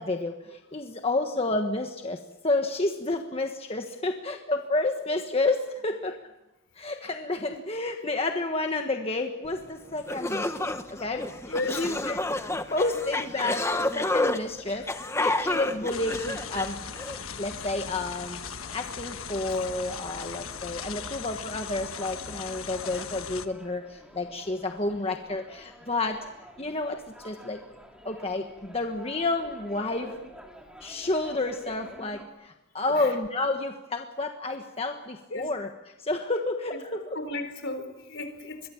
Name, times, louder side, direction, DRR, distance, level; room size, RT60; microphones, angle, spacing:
voice 1, 0.0-6.2 6.8-12.2 12.7-16.8 17.4-18.4 18.7-26.2 26.6-27.6 28.0-30.1 30.8-35.7 36.0-37.2, left 2 dB, 30° left, 4 dB, 1.4 m, -30 dB
sound 1, 9.7-9.8 10.1-17.2, left 2 dB, 15° left, 1.1 m, -29 dB
voice 2, 11.5-11.9 32.9-33.1 35.3-35.5 37.0-38.7, left 2 dB, 65° left, 9 dB, 3.9 m, -34 dB
sound 2, 15.8-32.2, equal, 5° right, 3.1 m, -50 dB
sound 3, 15.9-23.5, left 7 dB, 85° left, 1.3 m, -39 dB
26.5 x 22.5 x 7.2 m, 0.96 s
head